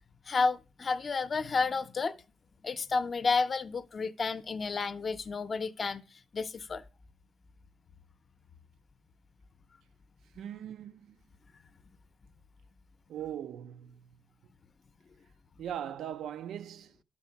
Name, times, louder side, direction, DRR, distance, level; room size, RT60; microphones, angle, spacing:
voice 1, 0.3-2.2 2.6-6.0 6.3-6.8, left 4 dB, 35° left, 0.7 m, -31 dB
voice 2, 10.3-11.2 13.1-14.1 14.4-14.5 15.6-17.0, right 10 dB, 75° right, 0.6 m, -40 dB
11.5 x 4.2 x 5.8 m
cardioid pair, 120°, 0 cm